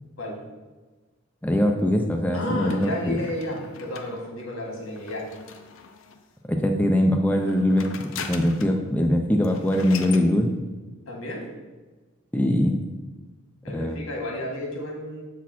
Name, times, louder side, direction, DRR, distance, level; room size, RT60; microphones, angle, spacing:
voice 1, 1.4-3.2 6.5-7.9 8.3-10.5 12.3-12.8 13.7-14.0, left 1 dB, 10° left, 2 dB, 0.4 m, -22 dB
voice 2, 2.3-5.3 11.1-11.5 13.6-15.2, left 1 dB, 85° left, -1 dB, 1.8 m, -32 dB
sound 1, 2.7-6.3 7.3-8.8 9.1-9.2 9.4-10.3, left 6 dB, 70° left, 0.6 m, -41 dB
7.1 x 4.1 x 4.3 m, 1.3 s
head